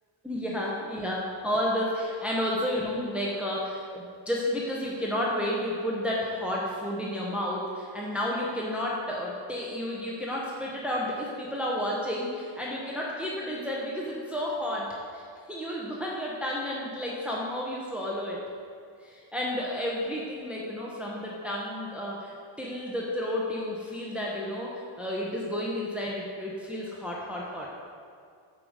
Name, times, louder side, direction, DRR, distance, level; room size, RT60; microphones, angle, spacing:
voice 1, 0.2-18.4 19.0-27.7, left 1 dB, ahead, -4 dB, 0.8 m, -31 dB
7.6 x 5.1 x 6.4 m, 2.2 s
wide cardioid pair, 150°, 49 cm